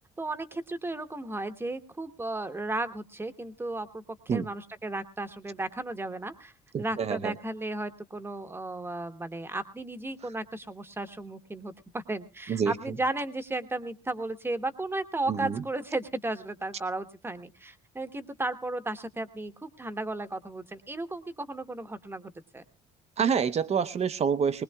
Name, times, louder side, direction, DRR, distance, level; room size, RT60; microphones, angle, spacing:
voice 1, 0.2-6.5 6.8-22.6, right 2 dB, 15° right, 9 dB, 1.1 m, -34 dB
voice 2, 6.7-7.3 12.5-12.7 15.3-15.6 23.2-24.6, right 7 dB, 40° right, 12 dB, 0.8 m, -27 dB
20.5 x 19.5 x 2.3 m, 0.29 s
cardioid pair, 110°, 17 cm